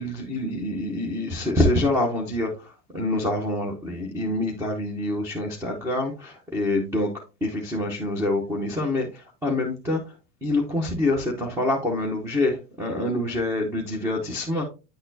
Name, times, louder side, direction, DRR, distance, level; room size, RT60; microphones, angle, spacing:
voice 1, 0.0-7.1 7.4-10.1 10.4-14.6, left 1 dB, 5° right, 1 dB, 0.7 m, -26 dB
9.0 x 4.1 x 2.6 m, 0.30 s
supercardioid pair, 140°, 50 cm